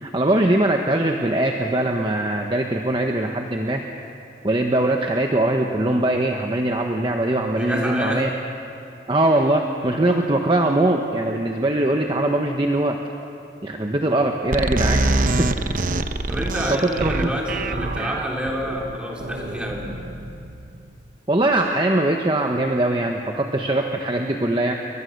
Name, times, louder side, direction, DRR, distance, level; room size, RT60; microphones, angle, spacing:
voice 1, 0.0-3.8 4.4-8.3 9.1-13.0 13.6-15.0 15.4-15.5 15.9-16.0 16.7-17.3 21.3-24.7, right 1 dB, 25° right, 2 dB, 1.1 m, -21 dB
voice 2, 7.5-8.3 15.6-15.7 16.3-19.9, equal, 5° right, -2 dB, 3.5 m, -28 dB
sound 1, 14.5-20.9, right 2 dB, 45° right, 0.9 m, -25 dB
29.0 x 23.0 x 6.6 m, 2.6 s
head